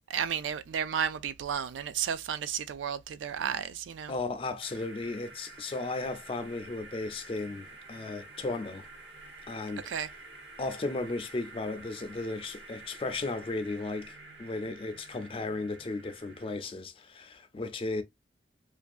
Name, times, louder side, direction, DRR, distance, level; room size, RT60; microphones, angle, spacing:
voice 1, 0.1-4.1 9.9-10.1, right 8 dB, 85° right, 0.3 m, -33 dB
voice 2, 4.1-8.9 9.5-9.9 10.6-18.0, left 3 dB, 30° left, 0.4 m, -35 dB
sound 1, 4.6-16.5, right 2 dB, 65° right, 0.8 m, -49 dB
2.6 x 2.2 x 2.3 m
head